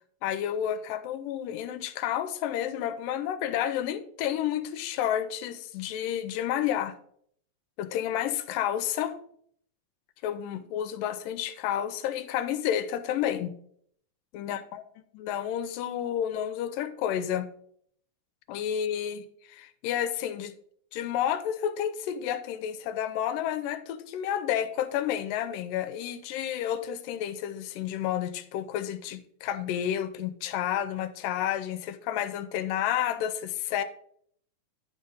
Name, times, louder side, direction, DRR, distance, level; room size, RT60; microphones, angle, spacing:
voice 1, 0.2-6.9 7.8-9.2 10.2-13.5 14.3-14.8 15.2-17.5 18.5-20.5 20.9-33.8, left 10 dB, 85° left, 11 dB, 2.3 m, -30 dB
10.0 x 5.4 x 3.9 m, 0.63 s
omnidirectional pair, 3.9 m